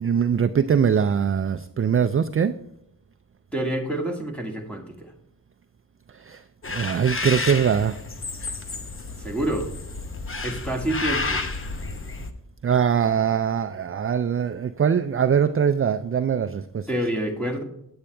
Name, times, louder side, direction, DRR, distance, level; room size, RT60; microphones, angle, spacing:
voice 1, 0.0-2.6 6.2-6.4 6.7-8.0 12.6-16.9, right 7 dB, 35° right, 9 dB, 0.4 m, -22 dB
voice 2, 3.5-5.1 9.2-9.7 10.4-11.4 16.9-17.6, right 1 dB, 5° left, 1 dB, 1.7 m, -27 dB
sound 1, 6.6-12.3, left 3 dB, 30° left, 0.9 m, -31 dB
8.8 x 8.5 x 3.3 m, 0.80 s
wide cardioid pair, 115°, 39 cm